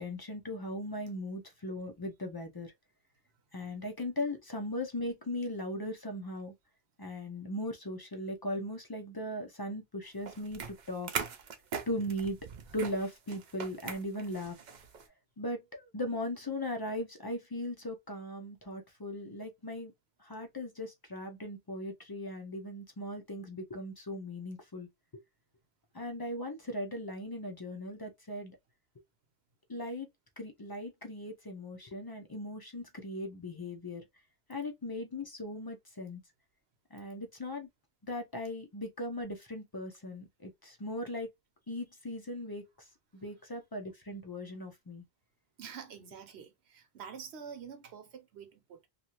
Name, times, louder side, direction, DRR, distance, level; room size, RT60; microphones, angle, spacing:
voice 1, 0.0-2.7 3.5-6.5 7.0-11.1 11.9-12.4 12.7-14.6 15.4-19.9 20.2-24.9 25.9-28.5 29.7-30.1 30.4-34.0 34.5-36.2 36.9-37.7 38.0-41.3 41.7-42.7 43.1-45.0, left 1 dB, 35° left, 0.3 m, -38 dB
sound 1, 10.2-15.1, right 6 dB, 55° right, 0.6 m, -41 dB
voice 2, 45.6-48.9, right 7 dB, 80° right, 1.0 m, -47 dB
2.7 x 2.4 x 2.8 m
omnidirectional pair, 1.1 m